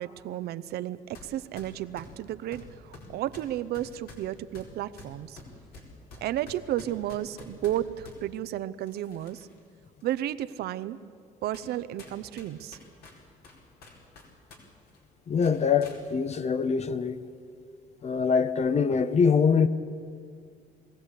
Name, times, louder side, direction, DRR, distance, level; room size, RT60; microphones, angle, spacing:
voice 1, 0.0-5.4 6.2-9.5 10.0-11.0 11.4-12.8, right 12 dB, 70° right, 0.8 m, -33 dB
sound 1, 1.1-1.3 1.6-8.2 8.8-9.6 10.0-10.1 10.8-10.9 11.5-11.7 12.0-14.6 14.9-15.0 15.4-16.0, left 3 dB, 65° left, 4.5 m, -48 dB
voice 2, 15.3-17.2 18.0-19.7, left 6 dB, 40° left, 1.0 m, -24 dB
21.5 x 15.5 x 8.3 m
cardioid pair, 110°, 17 cm